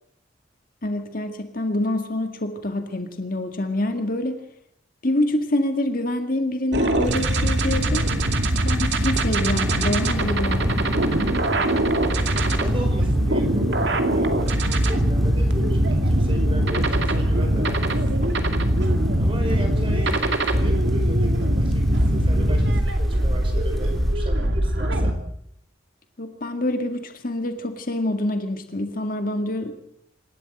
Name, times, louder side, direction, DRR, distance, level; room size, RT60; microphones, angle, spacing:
voice 1, 0.8-4.4 5.0-8.1 8.6-10.9 26.2-29.8, left 1 dB, 45° left, 6 dB, 2.0 m, -26 dB
sound 1, 6.7-25.1, right 1 dB, 60° right, 2.4 m, -21 dB
sound 2, 7.0-24.2, equal, ahead, 3.3 m, -35 dB
voice 2, 12.6-18.0 19.2-25.2, equal, 25° right, 4 dB, 5.4 m, -36 dB
26.5 x 13.0 x 7.8 m, 0.72 s
head